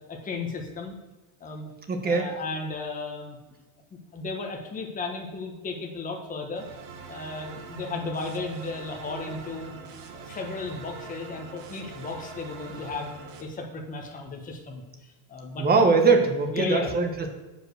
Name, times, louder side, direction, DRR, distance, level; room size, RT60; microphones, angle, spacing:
voice 1, 0.1-0.9 1.4-1.7 2.0-3.4 3.9-6.7 7.1-9.7 10.1-13.1 13.4-15.9 16.5-17.0, left 3 dB, 20° left, 1 dB, 1.3 m, -34 dB
voice 2, 1.9-2.3 15.6-17.3, right 4 dB, 25° right, 5 dB, 1.3 m, -21 dB
sound 1, 6.6-13.4, right 4 dB, 80° right, 1.5 m, -43 dB
7.3 x 5.3 x 6.4 m, 1.1 s
supercardioid pair, 130°, 39 cm